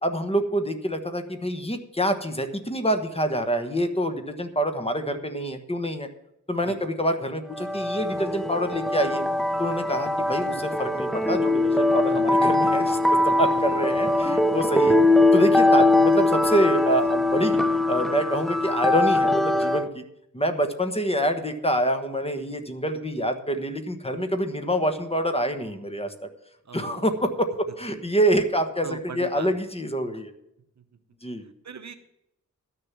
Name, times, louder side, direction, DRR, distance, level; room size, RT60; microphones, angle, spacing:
voice 1, 0.0-6.1 6.5-9.2 9.6-15.0 15.3-17.6 17.9-20.0 20.3-26.1 26.7-30.3 31.2-31.4, right 1 dB, 20° left, 7 dB, 1.2 m, -26 dB
sound 1, 7.5-19.9, left 2 dB, ahead, 0.5 m, -22 dB
voice 2, 26.6-27.3 28.8-29.5 30.8-30.9 31.4-32.0, right 6 dB, 60° right, 9 dB, 1.0 m, -40 dB
12.5 x 6.7 x 7.3 m, 0.83 s
wide cardioid pair, 130°, 32 cm